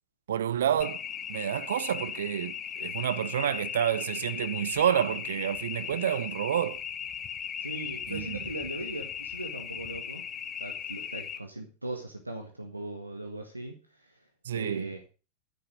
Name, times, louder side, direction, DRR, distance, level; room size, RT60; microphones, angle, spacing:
voice 1, 0.3-1.0 1.3-6.8 8.1-8.4 14.5-14.9, right 9 dB, 60° right, 0.6 m, -29 dB
sound 1, 0.8-11.4, left 8 dB, 25° left, 1.0 m, -37 dB
voice 2, 7.6-10.2 10.6-13.8 14.5-15.0, right 2 dB, 85° right, 1.7 m, -39 dB
9.9 x 7.8 x 6.5 m
figure-of-eight pair, 90°, 0 cm